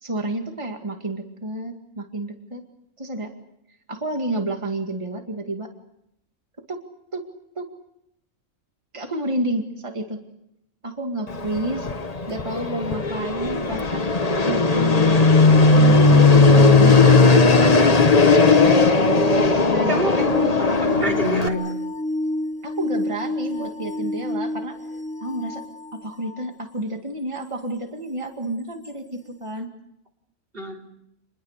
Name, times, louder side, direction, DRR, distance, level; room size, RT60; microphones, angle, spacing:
voice 1, 0.0-2.6 3.0-3.3 3.9-5.7 6.7-6.8 7.1-7.2 7.6-7.7 8.9-10.2 10.8-11.9 12.3-14.1 14.4-18.0 19.7-20.5 22.6-24.8 25.2-25.6 25.9-29.7, right 1 dB, 20° right, 4 dB, 2.2 m, -30 dB
Fixed-wing aircraft airplane, 11.3-21.5, left 3 dB, 30° left, 1.2 m, -16 dB
sound 1, 17.1-26.5 28.8-28.9, left 1 dB, 5° left, 0.7 m, -30 dB
voice 2, 19.9-21.6 29.6-29.7 30.5-30.8, equal, 40° right, 3 dB, 4.0 m, -27 dB
28.0 x 21.0 x 6.7 m, 0.79 s
omnidirectional pair, 1.4 m